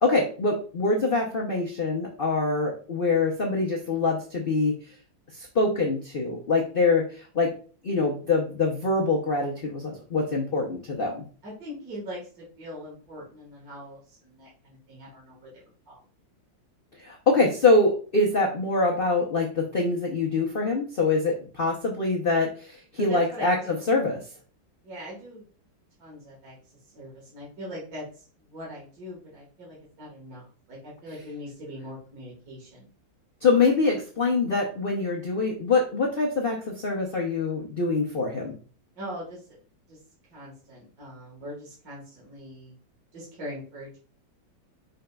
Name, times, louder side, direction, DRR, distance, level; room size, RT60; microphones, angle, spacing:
voice 1, 0.0-4.7 5.3-7.5 7.8-11.2 17.0-24.2 33.4-38.6, left 3 dB, 85° left, -2 dB, 0.4 m, -24 dB
voice 2, 11.4-16.0 23.0-23.9 24.8-25.5 26.0-26.6 26.9-32.9 39.0-39.6 39.9-40.0 40.3-42.7 43.1-44.0, equal, 50° right, -6 dB, 1.9 m, -41 dB
5.2 x 3.9 x 2.3 m, 0.40 s
omnidirectional pair, 2.1 m